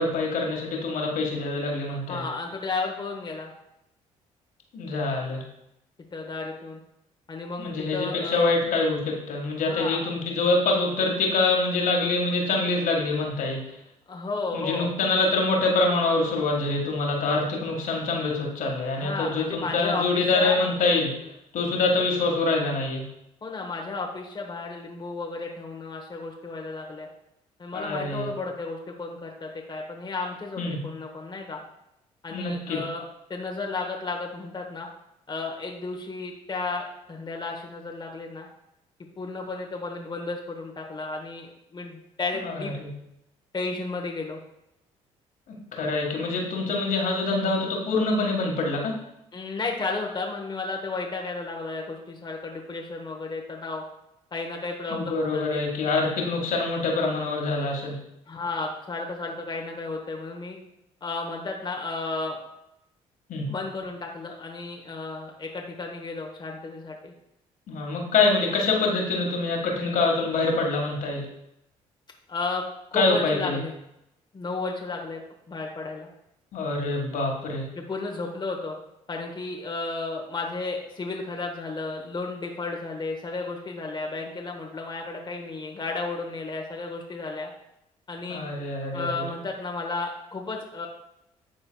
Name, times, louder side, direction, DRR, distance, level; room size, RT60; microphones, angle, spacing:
voice 1, 0.0-2.3 4.7-5.4 7.6-13.8 14.5-21.1 21.5-23.0 27.7-28.3 30.6-30.8 32.3-32.8 42.4-42.9 45.5-48.9 54.9-58.0 63.3-63.5 67.7-71.3 72.9-73.6 76.5-77.6 88.3-89.3, left 3 dB, 65° left, 0 dB, 1.6 m, -25 dB
voice 2, 2.1-3.5 6.1-6.8 7.3-8.5 9.6-10.1 14.1-14.9 19.0-20.6 23.4-27.1 27.6-31.6 32.2-33.0 33.3-34.9 35.3-38.5 39.2-42.7 43.5-44.4 49.3-53.8 54.3-55.6 58.3-60.6 61.0-62.4 63.5-67.1 72.3-72.6 72.9-73.7 74.3-75.2 75.5-76.1 77.7-78.8 79.1-87.5 88.1-88.5 88.9-90.9, left 3 dB, 30° left, 0 dB, 1.0 m, -33 dB
11.0 x 3.9 x 2.3 m, 0.84 s
supercardioid pair, 60°, 15 cm